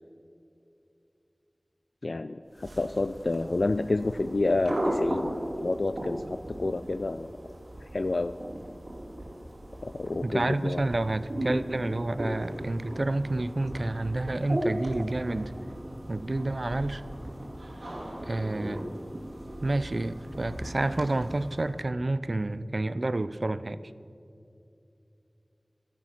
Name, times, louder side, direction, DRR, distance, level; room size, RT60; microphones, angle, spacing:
voice 1, 2.0-7.3 7.9-8.4 9.8-10.8, left 2 dB, 85° left, 10 dB, 0.3 m, -29 dB
sound 1, 2.5-21.8, right 1 dB, 90° right, 2.5 m, -37 dB
voice 2, 10.2-15.5 16.1-17.0 18.2-18.9 19.6-23.8, right 2 dB, 70° right, 14 dB, 0.5 m, -29 dB
13.0 x 10.5 x 5.8 m, 2.6 s
wide cardioid pair, 40°, 0 cm